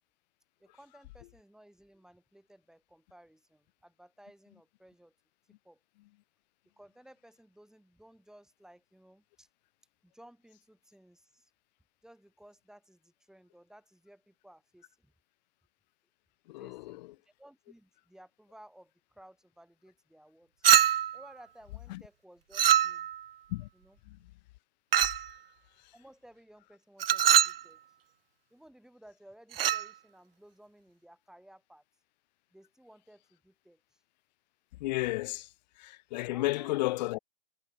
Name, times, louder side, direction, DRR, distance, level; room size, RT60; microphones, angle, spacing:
voice 1, 0.6-5.1 5.6-5.8 6.8-9.5 10.0-11.5 12.0-15.1 16.6-20.5 21.1-23.1 23.7-24.0 25.9-27.8 28.5-31.8 32.5-34.0 36.3-37.0, right 1 dB, ahead, 4.3 m, -57 dB
voice 2, 16.5-17.1 21.9-22.0 23.5-23.7 24.1-24.2 25.3-25.4 25.8-25.9 34.8-37.2, left 19 dB, 45° left, 1.9 m, -33 dB
Chink clink, 20.6-21.2 22.5-23.2 24.9-25.3 27.0-27.6 29.5-29.9, right 10 dB, 70° right, 0.6 m, -23 dB
figure-of-eight pair, 105°, 30 cm